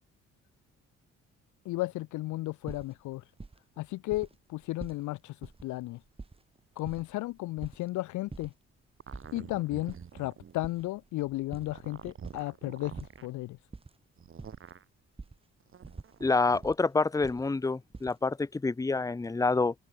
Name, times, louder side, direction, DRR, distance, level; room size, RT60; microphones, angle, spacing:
voice 1, 1.7-3.2 3.8-6.0 6.8-8.5 9.3-12.9 13.2-13.6, left 18 dB, 75° left, 0.5 m, -34 dB
sound 1, 2.7-3.8 4.1-4.3 4.6-5.0 5.4-5.6 6.0-7.9 8.3-8.5 8.8-9.4 9.8-10.1 10.6-12.5 13.0-13.9 14.2-14.7 15.2-15.4 15.8-16.8 17.2-18.2, right 3 dB, 20° right, 1.8 m, -45 dB
sound 2, 9.0-10.6 11.5-13.3 14.2-14.9 15.7-16.6, right 8 dB, 45° right, 1.5 m, -47 dB
voice 2, 16.2-19.7, left 3 dB, 10° left, 0.7 m, -27 dB
open air
cardioid pair, 90°, 30 cm